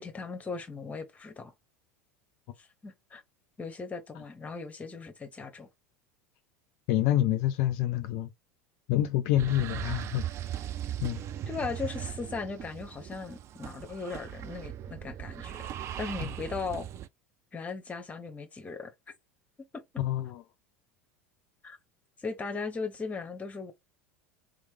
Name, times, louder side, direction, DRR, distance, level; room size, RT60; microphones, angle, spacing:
voice 1, 0.0-1.5 2.6-3.2 3.6-5.7 11.5-15.7 16.0-16.9 17.5-18.9 19.7-19.8 21.6-21.8 22.2-23.7, left 4 dB, 20° left, 1.0 m, -38 dB
voice 2, 6.9-8.3 8.9-10.2 11.0-11.2 20.0-20.4, left 13 dB, 50° left, 0.4 m, -27 dB
sound 1, 9.4-17.1, right 11 dB, 35° right, 0.4 m, -38 dB
3.7 x 3.2 x 3.3 m
figure-of-eight pair, 75°, 8 cm